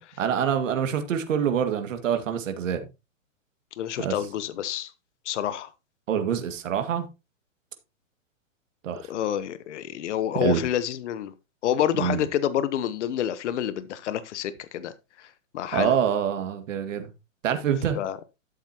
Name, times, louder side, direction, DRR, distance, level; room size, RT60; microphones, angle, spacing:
voice 1, 0.2-2.8 4.0-4.1 6.1-7.1 8.8-9.1 10.3-10.6 12.0-12.3 15.7-17.1 17.4-18.0, right 8 dB, 65° right, 2.1 m, -25 dB
voice 2, 3.8-4.9 5.2-5.7 9.1-11.3 11.6-14.9 15.2-15.3 15.5-15.9 17.9-18.2, left 10 dB, 60° left, 1.1 m, -28 dB
12.5 x 7.5 x 2.9 m
hypercardioid pair, 140°, 40 cm